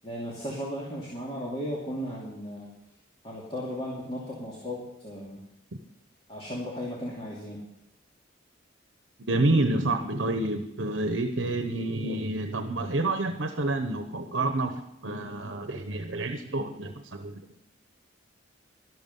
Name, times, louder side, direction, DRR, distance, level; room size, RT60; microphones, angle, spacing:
voice 1, 0.0-2.7 3.2-5.4 6.3-7.6, equal, 30° left, -5 dB, 2.6 m, -35 dB
voice 2, 9.3-14.7 15.0-17.4, right 2 dB, 70° right, 7 dB, 1.0 m, -28 dB
12.5 x 12.0 x 5.5 m, 0.87 s
head